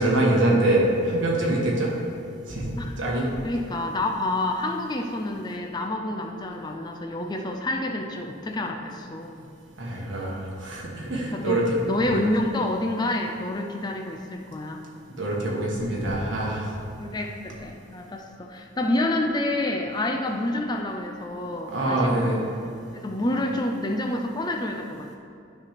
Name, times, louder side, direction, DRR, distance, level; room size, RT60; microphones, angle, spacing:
voice 1, 0.0-1.9 2.5-3.3 9.8-11.8 12.0-12.2 15.2-16.7 21.7-22.4, right 1 dB, 65° right, -4 dB, 1.4 m, -24 dB
voice 2, 3.4-9.5 11.3-11.6 11.9-14.8 17.0-22.2 22.6-25.1, left 1 dB, 20° left, 2 dB, 0.4 m, -28 dB
9.8 x 3.4 x 5.8 m, 2.5 s
head